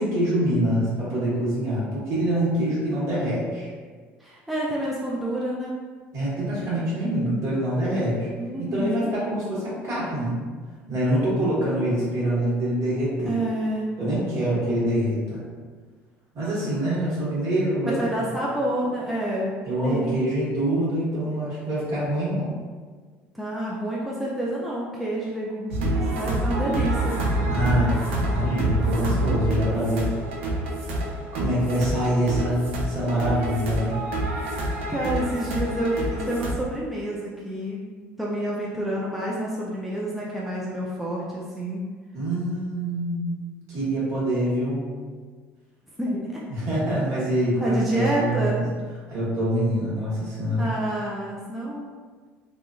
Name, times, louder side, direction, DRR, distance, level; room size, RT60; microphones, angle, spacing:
voice 1, 0.0-3.7 6.1-8.3 8.6-10.4 10.9-13.4 14.0-15.4 16.3-18.3 19.6-22.5 27.5-30.1 31.3-33.9 42.1-43.4 43.7-44.9 46.5-48.7 49.1-50.7, right 1 dB, 55° right, -8 dB, 1.5 m, -25 dB
voice 2, 4.2-5.8 8.4-9.1 13.2-13.9 17.9-20.2 23.3-27.1 27.4-27.6 34.9-37.8 38.2-41.9 46.0-46.4 47.0-47.1 47.6-48.6 50.6-51.9, right 1 dB, ahead, -5 dB, 0.5 m, -28 dB
sound 1, 25.7-36.5, right 1 dB, 90° right, 0.5 m, -27 dB
2.8 x 2.4 x 2.4 m, 1.5 s
supercardioid pair, 80°, 6 cm